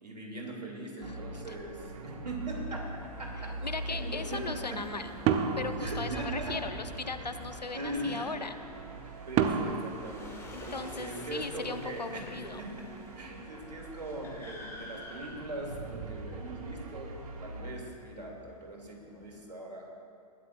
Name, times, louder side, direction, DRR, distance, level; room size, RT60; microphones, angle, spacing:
voice 1, 0.0-2.9 3.2-3.5 3.9-4.8 5.8-6.6 7.7-8.4 9.3-10.4 10.6-12.9 13.2-19.9, right 1 dB, 80° right, 0 dB, 2.6 m, -40 dB
voice 2, 1.0-1.4 3.6-5.1 5.6-8.5 10.5-12.6, left 4 dB, 90° left, 10 dB, 0.8 m, -38 dB
sound 1, 1.0-17.7, right 2 dB, 60° right, 1.3 m, -43 dB
sound 2, 2.3-19.4, left 2 dB, 10° left, 1.7 m, -50 dB
sound 3, 5.3-6.8 9.4-11.2, right 7 dB, 25° right, 0.7 m, -31 dB
20.0 x 13.0 x 2.5 m, 2.4 s
figure-of-eight pair, 110°, 21 cm